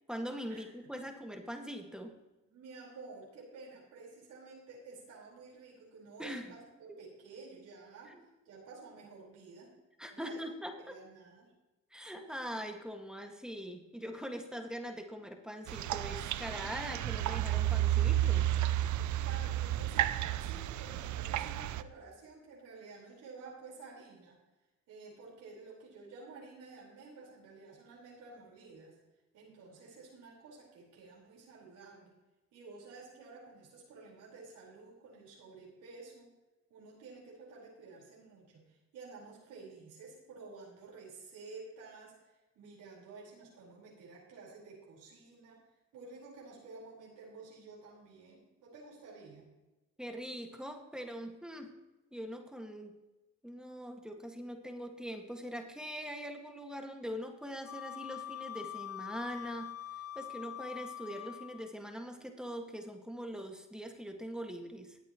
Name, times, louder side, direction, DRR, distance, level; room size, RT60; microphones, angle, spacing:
voice 1, 0.1-2.1 6.2-6.5 6.9-7.0 8.1-8.2 10.0-11.0 11.9-18.5 50.0-51.7 52.1-52.9 53.4-59.7 60.2-65.0, equal, ahead, 4 dB, 1.8 m, -42 dB
voice 2, 2.4-8.1 8.4-9.7 10.1-11.5 18.9-24.4 24.9-29.0 29.3-32.1 32.5-36.3 36.7-45.6 45.9-49.4, right 4 dB, 90° right, -4 dB, 4.7 m, -52 dB
sound 1, 15.7-21.8, right 13 dB, 70° right, 0.6 m, -32 dB
Wind instrument woodwind instrument, 57.6-61.7, left 11 dB, 55° left, 0.6 m, -44 dB
20.0 x 8.5 x 3.1 m, 1.1 s
cardioid pair, 90°, 30 cm